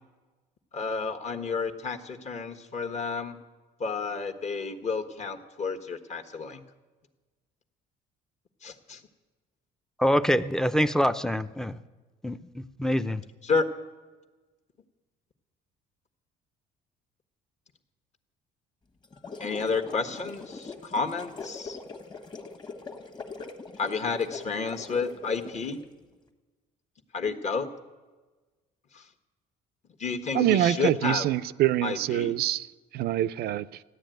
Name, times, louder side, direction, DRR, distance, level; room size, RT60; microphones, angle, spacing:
voice 1, 0.7-3.4 3.8-6.6 8.6-9.0 13.4-13.7 19.4-21.8 23.8-25.8 27.1-27.7 28.9-29.0 30.0-31.3 31.8-32.3, left 4 dB, 45° left, 1.4 m, -31 dB
voice 2, 10.0-11.8 12.2-13.2, equal, 5° left, 0.6 m, -25 dB
sound 1, 19.0-25.8, left 4 dB, 25° left, 1.4 m, -42 dB
voice 3, 30.3-32.7 32.9-33.7, right 13 dB, 70° right, 0.5 m, -25 dB
14.5 x 10.0 x 9.2 m
cardioid pair, 110°, 17 cm